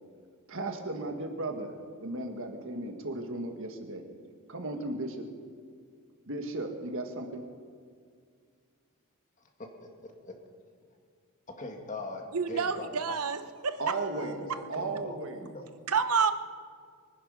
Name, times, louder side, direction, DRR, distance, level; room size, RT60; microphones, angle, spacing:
voice 1, 0.5-1.7 2.0-4.0 4.5-5.2 6.3-7.4 13.8-15.5, right 2 dB, 65° right, 4 dB, 1.8 m, -35 dB
voice 2, 9.4-10.3 11.6-13.2 14.1-15.2 15.4-15.7, left 2 dB, 35° left, 2 dB, 2.1 m, -42 dB
voice 3, 12.3-14.0 15.9-16.3, right 5 dB, 85° right, 11 dB, 0.8 m, -28 dB
24.0 x 10.0 x 5.6 m, 2.1 s
head